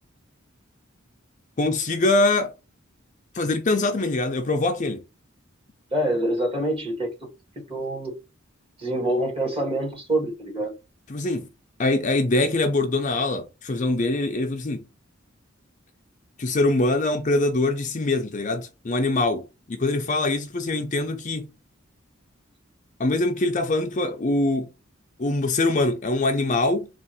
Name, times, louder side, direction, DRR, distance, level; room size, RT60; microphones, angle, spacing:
voice 1, 1.6-2.5 3.3-5.0 11.1-11.5 11.8-14.9 16.4-21.5 23.0-24.7 25.2-26.9, left 2 dB, 40° left, 0.5 m, -23 dB
voice 2, 5.9-7.1 7.7-8.2 8.8-10.7, right 1 dB, 25° right, 1.5 m, -25 dB
3.6 x 2.5 x 4.2 m
head